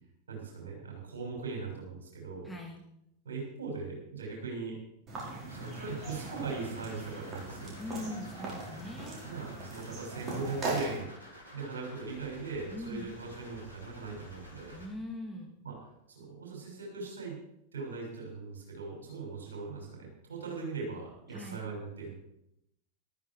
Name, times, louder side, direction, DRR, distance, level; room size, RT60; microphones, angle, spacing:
voice 1, 0.3-2.5 3.2-4.8 5.5-7.7 9.2-11.1 11.5-14.8 15.6-15.8 16.1-17.4 17.7-22.1, right 4 dB, 65° right, -1 dB, 6.7 m, -40 dB
voice 2, 2.4-2.8 7.8-9.2 12.7-13.1 14.7-15.5 21.3-21.7, left 1 dB, 5° left, 0 dB, 2.2 m, -41 dB
sound 1, 5.1-11.0, right 2 dB, 25° right, 5.4 m, -39 dB
sound 2, 5.4-14.9, left 1 dB, 85° left, 4.2 m, -51 dB
14.0 x 13.5 x 4.9 m, 0.79 s
figure-of-eight pair, 90°, 0 cm